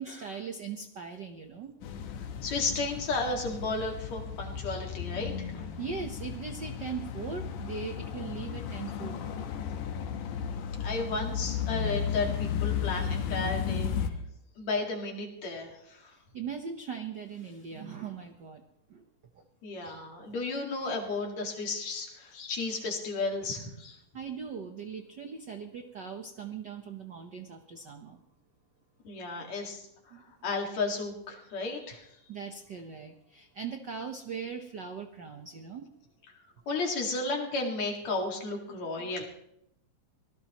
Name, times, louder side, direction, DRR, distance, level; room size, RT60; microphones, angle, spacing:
voice 1, 0.0-1.7 5.8-9.5 16.1-18.6 18.9-19.0 20.3-20.4 24.1-28.2 30.1-30.2 32.3-35.9 39.0-39.1, right 6 dB, 85° right, 5 dB, 0.9 m, -40 dB
sound 1, 1.8-14.1, left 7 dB, 80° left, 2.7 m, -34 dB
voice 2, 2.4-5.7 10.4-13.9 14.6-16.1 19.6-24.0 29.0-29.9 30.4-32.1 36.7-39.2, left 3 dB, 60° left, 1 dB, 3.3 m, -33 dB
25.5 x 18.0 x 3.0 m, 0.79 s
omnidirectional pair, 3.6 m